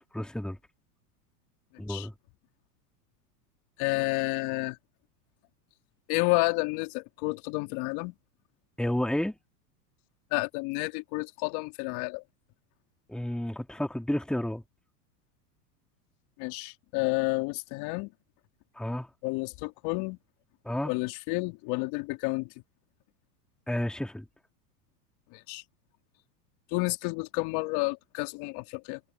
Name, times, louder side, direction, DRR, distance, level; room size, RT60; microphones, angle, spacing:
voice 1, 0.1-0.6 1.8-2.1 8.8-9.4 13.1-14.6 18.8-19.1 20.6-20.9 23.7-24.3, left 1 dB, ahead, 2.5 m, -31 dB
voice 2, 3.8-4.8 6.1-8.1 10.3-12.2 16.4-18.1 19.2-20.2 20.8-22.5 25.3-25.6 26.7-29.0, left 27 dB, 55° left, 3.4 m, -30 dB
hypercardioid pair, 105°, 49 cm